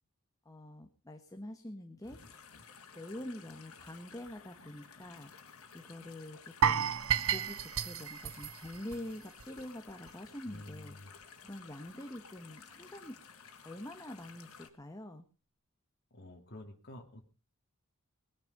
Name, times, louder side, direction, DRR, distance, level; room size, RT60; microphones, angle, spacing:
voice 1, 0.4-2.2 2.9-6.9 7.3-11.0 11.4-13.2 13.6-15.2, left 1 dB, 15° left, 5 dB, 1.4 m, -46 dB
sound 1, 2.0-14.7, left 6 dB, 80° left, 2.3 m, -55 dB
sound 2, 6.6-9.6 9.9-10.1 10.5-10.6, right 8 dB, 75° right, 0.8 m, -32 dB
voice 2, 10.4-11.1 16.1-17.2, left 1 dB, 50° left, 2 dB, 2.3 m, -49 dB
20.0 x 10.5 x 5.4 m, 0.36 s
head